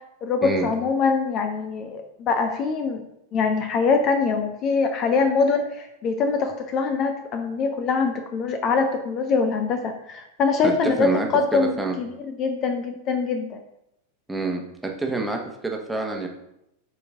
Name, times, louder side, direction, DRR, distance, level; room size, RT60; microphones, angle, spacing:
voice 1, 0.2-3.0 3.3-13.6, left 4 dB, 35° left, 6 dB, 0.7 m, -23 dB
voice 2, 10.6-12.0 14.3-16.3, right 3 dB, 5° right, 1 dB, 1.3 m, -27 dB
8.0 x 4.5 x 3.6 m, 0.83 s
figure-of-eight pair, 90°, 0 cm